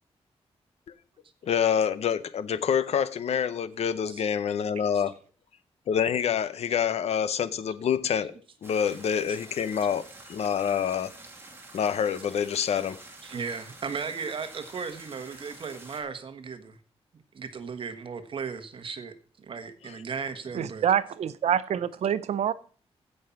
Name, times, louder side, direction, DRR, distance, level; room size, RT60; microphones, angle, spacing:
voice 1, 1.4-5.1 5.9-8.3 8.6-10.0 10.3-11.1 11.7-13.0, left 8 dB, 75° left, 0.7 m, -26 dB
sound 1, 8.6-16.0, right 2 dB, 20° right, 2.5 m, -48 dB
voice 2, 13.2-16.8 17.3-20.9, right 5 dB, 50° right, 1.3 m, -36 dB
voice 3, 20.5-22.5, right 9 dB, 85° right, 0.7 m, -26 dB
16.0 x 5.5 x 5.7 m
wide cardioid pair, 145°, 11 cm